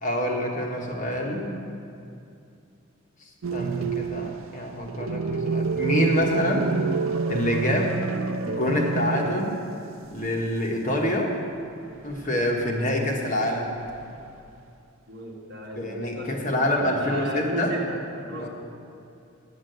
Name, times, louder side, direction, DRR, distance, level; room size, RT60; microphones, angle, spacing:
voice 1, 0.0-1.6 3.2-6.7 7.3-8.1 8.4-9.6 10.1-11.3 12.0-13.8 15.8-17.7 18.3-18.5, equal, 35° left, -1 dB, 1.2 m, -26 dB
sound 1, 3.4-10.0 10.2-10.3 12.0-12.7 13.8-14.5, right 4 dB, 65° right, 0.5 m, -28 dB
voice 2, 15.1-16.7 17.0-18.5, right 1 dB, 50° right, -2 dB, 1.6 m, -34 dB
9.4 x 7.4 x 7.8 m, 2.6 s
head